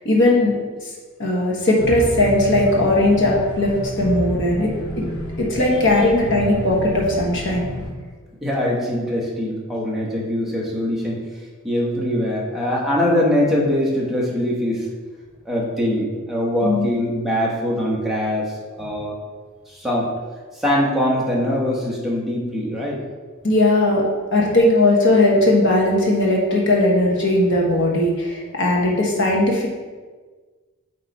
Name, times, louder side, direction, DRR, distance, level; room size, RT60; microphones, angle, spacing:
voice 1, 0.0-0.7 1.2-3.7 4.0-4.7 5.4-7.7 16.6-16.9 23.4-24.0 24.3-29.7, left 1 dB, 55° left, -3 dB, 1.4 m, -18 dB
sound 1, 1.8-7.9, equal, 80° left, 1.7 m, -30 dB
voice 2, 8.4-11.2 11.6-14.9 15.4-18.5 18.8-19.1 19.7-20.1 20.5-23.0, left 1 dB, ahead, -5 dB, 1.1 m, -22 dB
8.7 x 3.2 x 4.1 m, 1.4 s
head